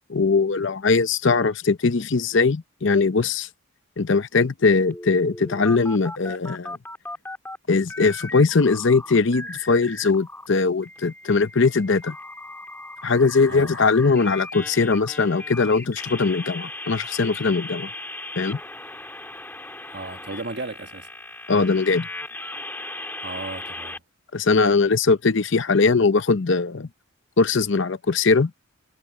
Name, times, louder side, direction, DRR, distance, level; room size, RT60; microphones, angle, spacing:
voice 1, 0.1-3.5 4.0-6.8 7.7-12.2 13.0-17.9 18.4-18.6 21.5-22.1 24.3-26.9 27.4-28.5, left 4 dB, 60° left, 0.7 m, -20 dB
sound 1, 4.9-7.6 7.9-10.5 10.8-24.0, left 2 dB, 10° left, 2.9 m, -37 dB
voice 2, 13.4-13.8 19.9-21.1 23.2-24.0, right 3 dB, 55° right, 1.3 m, -35 dB
head